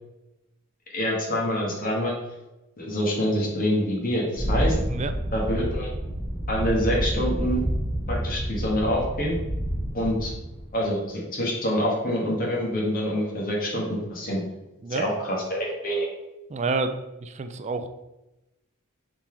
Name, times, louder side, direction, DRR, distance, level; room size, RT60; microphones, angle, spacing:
voice 1, 0.9-2.2 2.8-4.7 5.3-5.9 6.5-7.6 8.1-9.4 9.9-10.3 10.7-14.4 14.9-16.1, equal, 40° left, -3 dB, 1.4 m, -26 dB
sound 1, 4.4-10.7, equal, 15° right, 1.2 m, -28 dB
voice 2, 16.5-17.9, right 3 dB, 30° right, 8 dB, 0.4 m, -29 dB
5.7 x 3.8 x 4.4 m, 0.98 s
head